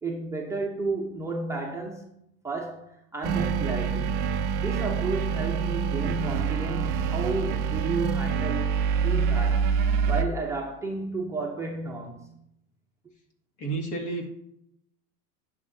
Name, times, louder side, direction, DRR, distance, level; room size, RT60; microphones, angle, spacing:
voice 1, 0.0-2.1 2.4-4.3 4.6-8.7 9.0-12.3, right 3 dB, 5° right, 0.7 m, -32 dB
sound 1, 3.2-10.2, right 6 dB, 25° right, 0.3 m, -26 dB
voice 2, 13.6-14.3, right 3 dB, 50° left, 2.1 m, -31 dB
10.5 x 6.6 x 2.7 m
hypercardioid pair, 115°, 49 cm